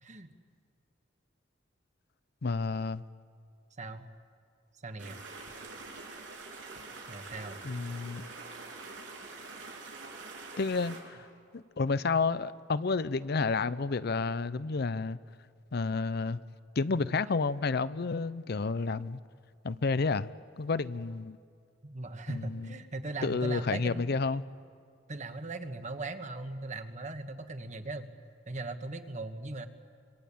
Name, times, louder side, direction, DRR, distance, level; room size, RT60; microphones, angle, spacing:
voice 1, 2.4-3.0 7.6-8.3 10.6-11.2 11.5-15.2 15.7-16.4 16.8-19.2 19.6-20.3 20.6-21.4 22.3-22.7 23.2-24.4, left 4 dB, 60° left, 0.6 m, -30 dB
voice 2, 3.8-4.1 4.8-5.2 7.1-7.6 16.9-17.2 21.8-24.0 25.1-28.1 28.5-29.7, right 2 dB, 40° right, 1.5 m, -39 dB
sound 1, 5.0-11.0, right 3 dB, 85° right, 6.6 m, -45 dB
26.0 x 23.0 x 8.6 m
head